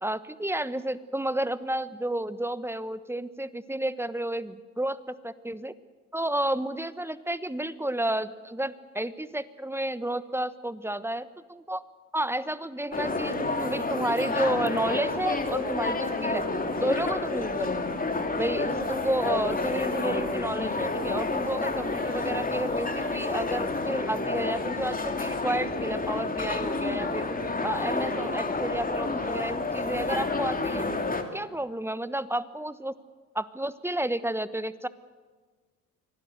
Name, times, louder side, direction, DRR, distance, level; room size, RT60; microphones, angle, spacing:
voice 1, 0.0-5.7 6.1-11.8 12.1-16.4 16.8-17.8 18.4-27.3 27.6-30.9 31.3-33.0 33.3-34.9, right 1 dB, 5° right, 15 dB, 1.1 m, -31 dB
sound 1, 12.9-31.2, left 3 dB, 20° left, 2.8 m, -29 dB
25.0 x 17.5 x 8.0 m, 1.4 s
hypercardioid pair, 60°, 40 cm